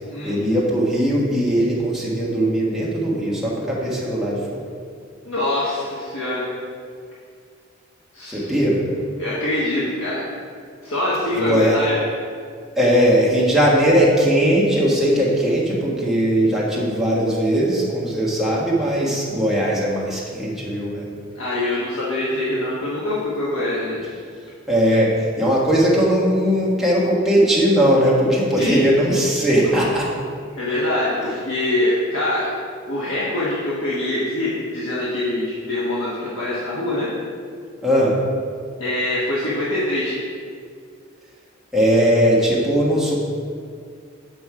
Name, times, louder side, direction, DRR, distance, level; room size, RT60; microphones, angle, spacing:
voice 1, 0.2-4.6 8.3-8.8 11.3-11.8 12.7-21.0 24.7-30.1 37.8-38.2 41.7-43.1, equal, ahead, -6 dB, 1.4 m, -19 dB
voice 2, 5.2-6.5 8.1-8.4 9.2-10.2 10.8-12.0 21.3-24.0 28.6-28.8 30.6-32.5 32.9-37.1 38.8-40.2, left 1 dB, 75° left, -7 dB, 1.2 m, -24 dB
7.9 x 5.1 x 4.8 m, 2.1 s
head